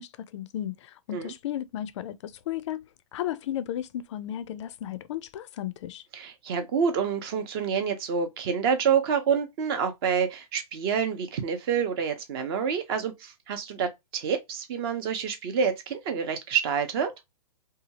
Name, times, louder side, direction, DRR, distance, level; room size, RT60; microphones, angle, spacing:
voice 1, 0.0-2.8 3.1-6.0, left 11 dB, 50° left, 0.4 m, -34 dB
voice 2, 6.1-17.1, right 7 dB, 40° right, 0.7 m, -27 dB
2.8 x 2.3 x 2.8 m
hypercardioid pair, 145°, 20 cm